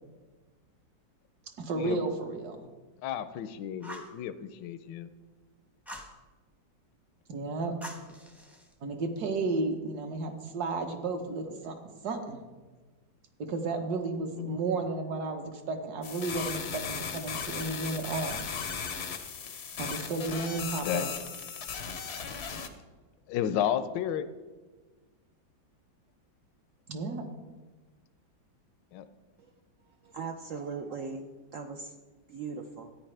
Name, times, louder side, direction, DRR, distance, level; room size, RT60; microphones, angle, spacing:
voice 1, 1.6-2.7 7.3-7.8 8.8-11.7 12.0-12.4 13.4-16.8 17.1-18.4 19.8-21.1 26.9-27.3, right 3 dB, 60° right, 5 dB, 1.5 m, -33 dB
voice 2, 3.0-5.1 14.3-14.6 20.8-21.1 23.3-24.3 28.9-29.1, left 10 dB, 75° left, 11 dB, 1.2 m, -32 dB
Fire, 3.8-4.2 5.9-6.2 7.8-8.7, equal, ahead, 0.5 m, -44 dB
sound 1, 16.0-22.7, left 6 dB, 60° left, 0.7 m, -37 dB
voice 3, 30.0-31.2 31.5-31.9 32.3-32.9, right 5 dB, 80° right, 5 dB, 0.7 m, -38 dB
14.0 x 9.6 x 3.3 m, 1.3 s
omnidirectional pair, 2.1 m